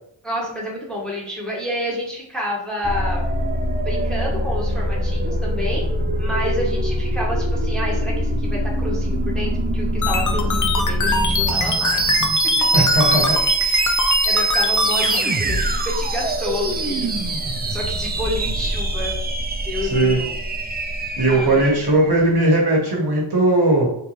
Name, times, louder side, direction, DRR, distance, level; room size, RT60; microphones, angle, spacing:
voice 1, 0.2-3.3 3.8-5.9 6.2-12.3 13.6-17.1 17.6-19.1 19.7-20.3 21.3-22.1, left 1 dB, ahead, -4 dB, 0.9 m, -29 dB
sound 1, 2.8-22.2, right 1 dB, 25° right, 0.3 m, -23 dB
sound 2, 10.0-15.2, left 4 dB, 40° left, 0.5 m, -22 dB
voice 2, 12.7-13.4 19.9-20.2 21.2-23.9, right 1 dB, 55° right, -2 dB, 1.0 m, -18 dB
3.3 x 2.6 x 3.0 m, 0.74 s
wide cardioid pair, 95°, 47 cm